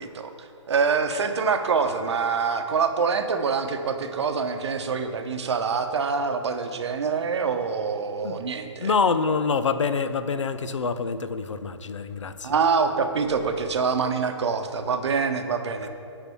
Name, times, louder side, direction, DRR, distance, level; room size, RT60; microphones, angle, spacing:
voice 1, 0.0-8.9 12.4-15.9, right 5 dB, 65° right, 7 dB, 0.9 m, -25 dB
voice 2, 8.8-12.5, left 5 dB, 80° left, 12 dB, 0.6 m, -26 dB
10.0 x 4.1 x 7.0 m, 2.5 s
hypercardioid pair, 140°, 15 cm